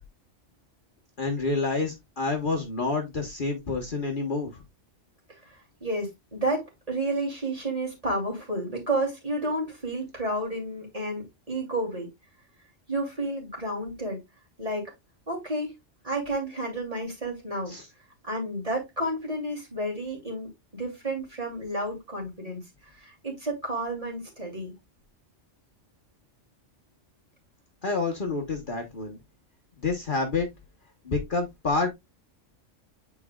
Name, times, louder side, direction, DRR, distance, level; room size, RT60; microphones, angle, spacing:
voice 1, 1.2-4.6 17.7-17.9 27.8-29.2 29.8-30.5 31.0-31.9, left 3 dB, 45° left, 1 dB, 1.3 m, -28 dB
voice 2, 5.8-12.1 12.9-14.2 14.6-14.9 15.3-15.7 16.0-17.7 18.2-24.7, right 1 dB, 30° right, -1 dB, 3.0 m, -31 dB
9.4 x 4.6 x 2.3 m, 0.19 s
omnidirectional pair, 1.3 m